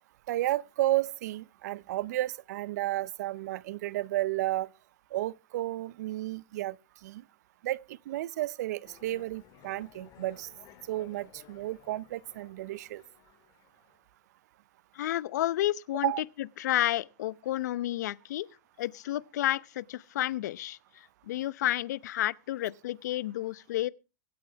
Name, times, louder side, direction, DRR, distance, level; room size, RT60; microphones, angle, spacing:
voice 1, 0.3-4.7 5.1-6.8 7.0-7.2 7.6-10.5 10.9-13.0 16.0-16.2, right 16 dB, 65° right, 0.6 m, -32 dB
sound 1, 8.8-14.0, left 13 dB, 40° left, 2.2 m, -57 dB
voice 2, 14.9-16.1 16.6-18.5 18.8-20.8 21.3-23.9, left 14 dB, 70° left, 0.8 m, -31 dB
24.0 x 8.8 x 3.4 m
hypercardioid pair, 125°, 10 cm